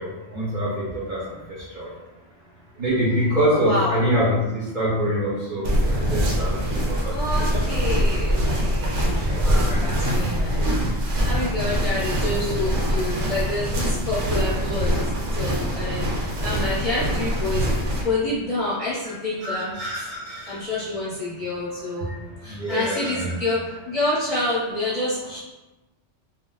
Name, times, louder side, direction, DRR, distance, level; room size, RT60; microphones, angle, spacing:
voice 1, 0.0-1.4 1.7-1.9 2.8-7.1 7.7-7.8 9.1-10.3 19.0-19.2 19.4-20.6 22.1-22.2 22.4-23.3, equal, 45° right, -7 dB, 0.7 m, -26 dB
voice 2, 3.5-4.0 7.1-17.7 18.0-20.1 20.5-22.1 22.4-25.4, left 2 dB, 35° left, -9 dB, 0.7 m, -28 dB
sound 1, 5.6-18.0, equal, 80° right, 1.0 m, -23 dB
2.3 x 2.0 x 3.7 m, 1.1 s
omnidirectional pair, 1.3 m